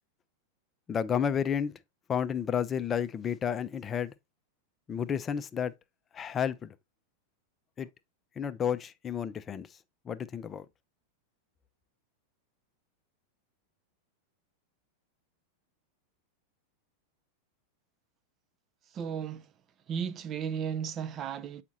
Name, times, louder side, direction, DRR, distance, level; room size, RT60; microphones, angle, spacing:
voice 1, 0.9-1.8 2.1-4.1 4.9-5.7 6.1-6.7 7.8-7.9 8.4-9.7 10.1-10.7, left 8 dB, 25° left, 0.5 m, -31 dB
voice 2, 18.9-19.5 19.9-21.6, right 7 dB, 30° right, 0.5 m, -35 dB
8.2 x 5.0 x 2.7 m
figure-of-eight pair, 90°, 0 cm